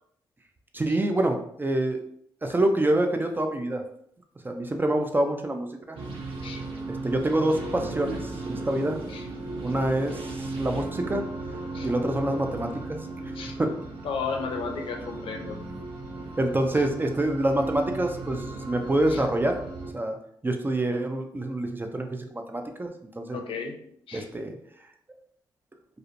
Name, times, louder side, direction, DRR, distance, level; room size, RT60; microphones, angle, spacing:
voice 1, 0.7-2.0 2.4-3.8 4.4-6.0 6.9-9.0 9.6-11.2 11.8-13.0 13.6-13.7 16.4-19.6 19.9-20.2 20.4-23.4 24.1-24.6, right 1 dB, 20° right, 5 dB, 0.4 m, -26 dB
sound 1, 6.0-19.9, right 2 dB, 75° right, 0.5 m, -36 dB
voice 2, 14.0-15.6 19.1-19.2 23.3-23.7 24.1-24.3, left 5 dB, 70° left, 3 dB, 0.5 m, -34 dB
2.4 x 2.1 x 2.5 m, 0.68 s
supercardioid pair, 45°, 9 cm